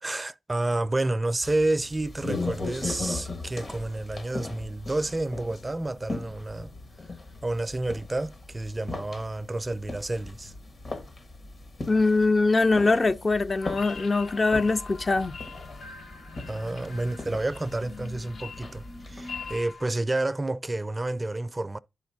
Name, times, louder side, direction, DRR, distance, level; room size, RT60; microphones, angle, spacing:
voice 1, 0.0-6.7 7.4-10.5 16.5-21.8, right 2 dB, 30° right, 0.4 m, -30 dB
sound 1, 1.4-19.6, left 2 dB, 60° left, 1.3 m, -38 dB
voice 2, 11.9-15.4, left 3 dB, 45° left, 0.4 m, -22 dB
sound 2, 13.6-19.9, left 5 dB, 75° left, 0.8 m, -44 dB
11.0 x 5.0 x 2.6 m
supercardioid pair, 40°, 0 cm